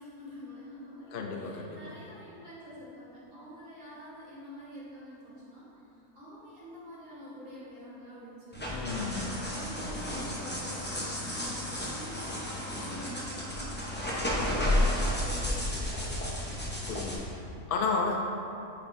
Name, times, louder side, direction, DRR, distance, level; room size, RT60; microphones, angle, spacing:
voice 1, 0.0-8.8 9.4-16.3, equal, 55° right, -10 dB, 2.0 m, -47 dB
voice 2, 1.1-1.8 8.7-9.4 9.8-10.0 16.9-18.2, left 4 dB, 70° left, 1 dB, 0.5 m, -33 dB
sound 1, 8.5-17.2, left 1 dB, 15° left, 0.4 m, -32 dB
8.6 x 4.2 x 2.6 m, 2.8 s
omnidirectional pair, 1.6 m